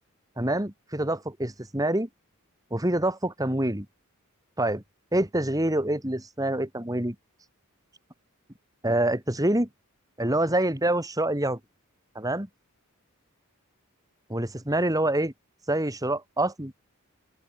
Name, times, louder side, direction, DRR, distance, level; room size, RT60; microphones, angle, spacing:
voice 1, 0.4-2.1 2.7-3.9 4.6-4.8 5.1-7.2 8.8-9.7 10.2-11.6 12.1-12.5 14.3-15.3 15.7-16.7, right 1 dB, 15° right, 2.5 m, -26 dB
head